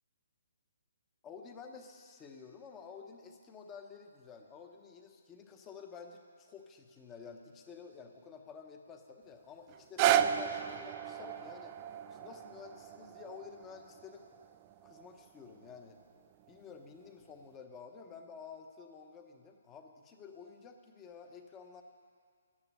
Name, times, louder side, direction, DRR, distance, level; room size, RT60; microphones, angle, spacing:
voice 1, 1.2-11.7 12.1-14.3 14.8-16.0 16.5-21.8, left 5 dB, 15° left, 4 dB, 0.9 m, -51 dB
sound 1, 9.7-15.8 16.5-16.6, right 10 dB, 20° right, 0.3 m, -34 dB
12.0 x 9.7 x 9.8 m, 2.1 s
hypercardioid pair, 170°, 0 cm